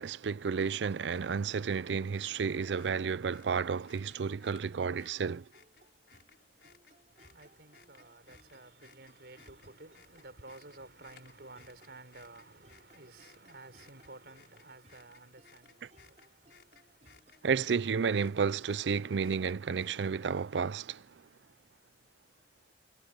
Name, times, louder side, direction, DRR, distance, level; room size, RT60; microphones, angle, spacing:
voice 1, 0.0-5.4 17.4-21.0, right 6 dB, 90° right, 0.5 m, -31 dB
sound 1, 1.1-20.4, left 6 dB, 70° left, 6.1 m, -63 dB
sound 2, 3.9-18.1, right 1 dB, 40° right, 6.3 m, -65 dB
voice 2, 7.1-17.1, right 2 dB, 65° right, 4.7 m, -53 dB
head